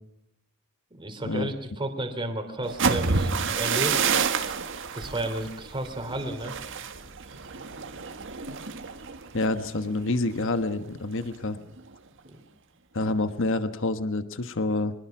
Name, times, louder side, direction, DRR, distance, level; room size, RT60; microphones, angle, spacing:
voice 1, 0.9-4.1 4.9-6.5 12.2-12.4, right 1 dB, 25° right, 5 dB, 3.2 m, -33 dB
sound 1, 2.6-10.5 10.9-11.2 11.5-11.9, right 5 dB, 60° right, 1.8 m, -29 dB
voice 2, 9.3-11.6 12.9-14.9, left 2 dB, 65° left, 10 dB, 1.3 m, -27 dB
24.0 x 21.0 x 6.0 m, 0.74 s
head